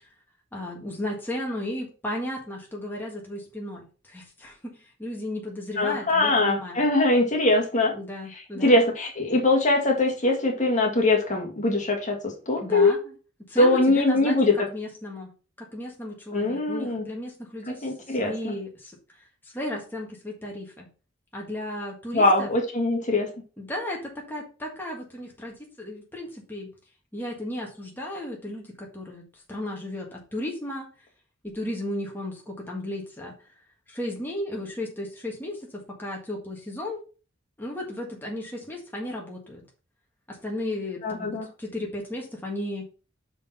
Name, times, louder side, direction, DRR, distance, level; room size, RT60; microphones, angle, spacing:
voice 1, 0.5-6.9 7.9-8.8 12.6-13.1 13.5-15.3 15.6-20.9 21.3-22.5 23.6-26.7 27.1-30.9 31.4-33.5 33.9-37.0 37.6-39.6 40.3-42.8, left 1 dB, 10° left, -2 dB, 1.6 m, -35 dB
voice 2, 5.8-8.0 8.6-12.9 13.6-14.5 16.3-17.1 17.8-18.5 22.1-23.3 41.0-41.5, left 2 dB, 40° left, 2 dB, 1.8 m, -22 dB
5.9 x 5.1 x 5.5 m, 0.35 s
head